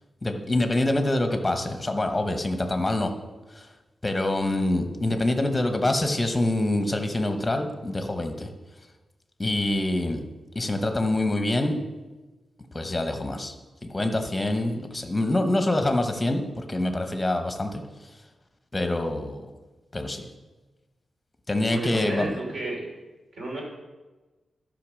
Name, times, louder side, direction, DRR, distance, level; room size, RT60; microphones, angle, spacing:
voice 1, 0.2-3.1 3.5-3.7 4.0-8.5 9.4-10.2 10.5-11.8 12.7-13.5 13.8-17.8 18.7-19.5 19.9-20.3 21.5-22.3, left 1 dB, 15° left, 6 dB, 0.9 m, -25 dB
voice 2, 21.7-22.9 23.3-23.6, right 1 dB, 60° right, -2 dB, 3.2 m, -32 dB
12.0 x 5.2 x 6.3 m, 1.2 s
wide cardioid pair, 160°, 0 cm